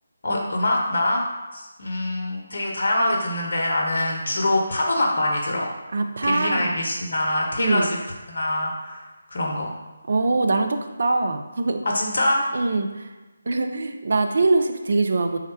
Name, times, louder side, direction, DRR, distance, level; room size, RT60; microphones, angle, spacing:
voice 1, 0.2-1.2 1.5-5.7 6.2-8.0 8.3-9.7 11.8-12.5, left 1 dB, 60° left, -1 dB, 0.7 m, -24 dB
voice 2, 5.9-6.8 7.6-7.9 10.1-11.8 12.5-13.1 13.5-15.4, right 3 dB, 60° right, 6 dB, 0.4 m, -23 dB
3.5 x 2.2 x 4.3 m, 1.2 s
figure-of-eight pair, 155°, 0 cm